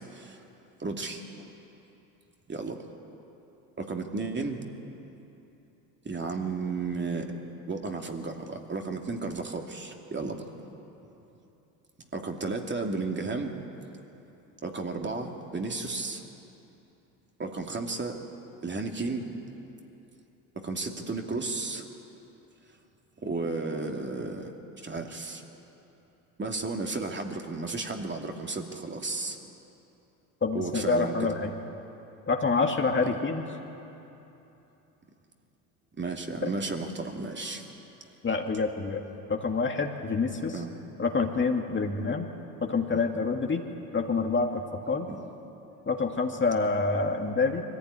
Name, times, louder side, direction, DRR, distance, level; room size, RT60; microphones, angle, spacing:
voice 1, 0.1-0.4 0.8-1.5 2.5-2.8 3.8-4.6 6.0-7.3 7.7-10.5 12.1-13.5 14.6-16.2 17.4-18.2 18.6-19.3 20.6-21.9 23.2-25.4 26.4-29.4 30.5-31.3 33.0-33.1 36.0-37.7 40.5-40.7 42.9-43.0 45.1-45.2, right 3 dB, 25° right, 2 dB, 2.6 m, -33 dB
voice 2, 30.4-31.5 32.3-33.4 38.2-39.0 39.3-40.6 41.0-42.3 42.6-43.6 43.9-45.1 45.9-47.6, left 4 dB, 25° left, 3 dB, 2.1 m, -27 dB
23.5 x 15.0 x 9.8 m, 2.9 s
hypercardioid pair, 65°, 46 cm